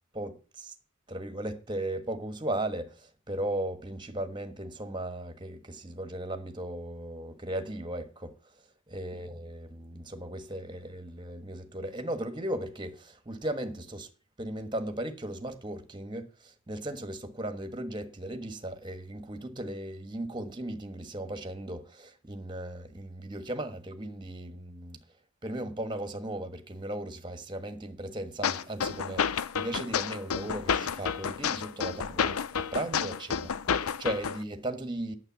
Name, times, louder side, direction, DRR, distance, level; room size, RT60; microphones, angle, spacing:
voice 1, 0.1-0.7 1.1-8.4 8.9-14.1 14.4-25.0 25.4-33.5 33.8-35.1, right 1 dB, 20° right, 1.3 m, -37 dB
sound 1, 28.4-34.4, left 7 dB, 85° left, 0.6 m, -30 dB
9.1 x 7.7 x 7.2 m
head